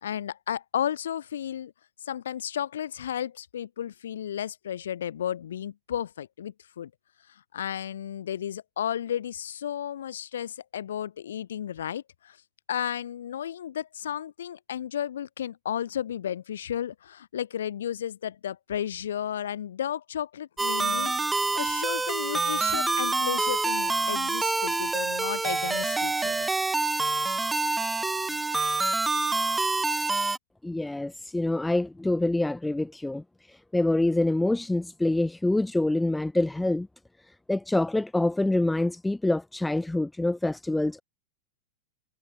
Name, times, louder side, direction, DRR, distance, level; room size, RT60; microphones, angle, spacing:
voice 1, 0.0-1.7 2.0-6.9 7.3-12.4 12.7-26.5, left 10 dB, 75° left, 2.5 m, -33 dB
sound 1, 20.6-30.4, right 3 dB, 10° right, 0.8 m, -27 dB
voice 2, 30.6-36.9 37.3-41.0, left 2 dB, 5° left, 1.6 m, -26 dB
hypercardioid pair, 100°, 0 cm